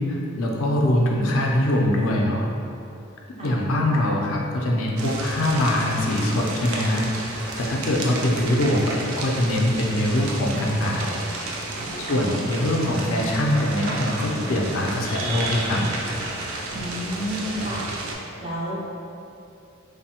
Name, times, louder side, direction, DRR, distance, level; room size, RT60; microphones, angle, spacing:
voice 1, 0.1-2.5 3.4-11.2 12.1-15.8, left 1 dB, 75° left, -1 dB, 0.4 m, -23 dB
sound 1, 5.0-18.2, right 2 dB, 90° right, 0.4 m, -32 dB
voice 2, 12.0-12.8 16.7-18.8, equal, 25° right, -6 dB, 0.5 m, -32 dB
3.2 x 2.0 x 2.8 m, 2.7 s
head